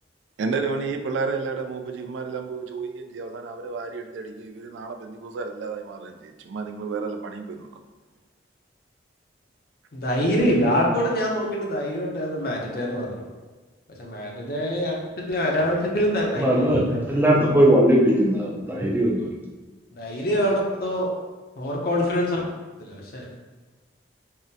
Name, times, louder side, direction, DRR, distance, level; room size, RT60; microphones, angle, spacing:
voice 1, 0.4-7.8 10.7-11.0, right 4 dB, 85° right, 6 dB, 0.3 m, -31 dB
voice 2, 9.9-13.3 14.0-14.9 15.3-16.5 16.9-17.2 19.9-21.1 21.6-22.4 22.8-23.3, equal, 55° left, -1 dB, 0.6 m, -25 dB
voice 3, 16.3-19.3, right 1 dB, 10° right, -3 dB, 0.4 m, -19 dB
3.6 x 2.1 x 2.7 m, 1.3 s
head